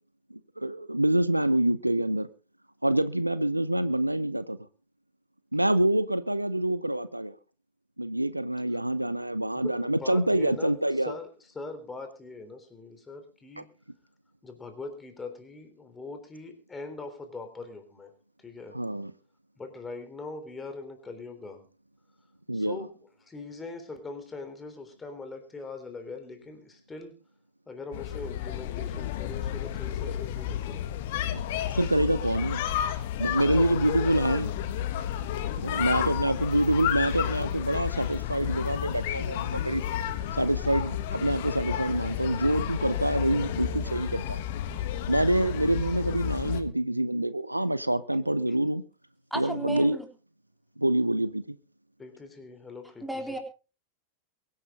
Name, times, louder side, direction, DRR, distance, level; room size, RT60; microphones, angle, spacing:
voice 1, 0.3-2.3 2.8-4.6 5.5-7.4 8.0-11.1 18.7-19.1 22.5-22.8 31.7-32.6 33.2-34.5 35.6-39.8 40.4-44.4 45.1-48.8 49.4-50.0 50.8-51.6, right 1 dB, 85° right, 16 dB, 0.7 m, -26 dB
voice 2, 9.6-13.7 14.4-18.1 18.4-18.8 19.6-21.6 22.5-27.2 27.7-30.9 52.0-53.4, left 3 dB, 15° left, 7 dB, 3.5 m, -42 dB
sound 1, 27.9-46.6, left 10 dB, 50° left, 1.6 m, -31 dB
voice 3, 49.3-50.1 53.0-53.4, right 2 dB, ahead, 3 dB, 3.6 m, -34 dB
23.0 x 9.9 x 3.8 m, 0.34 s
figure-of-eight pair, 90°, 0 cm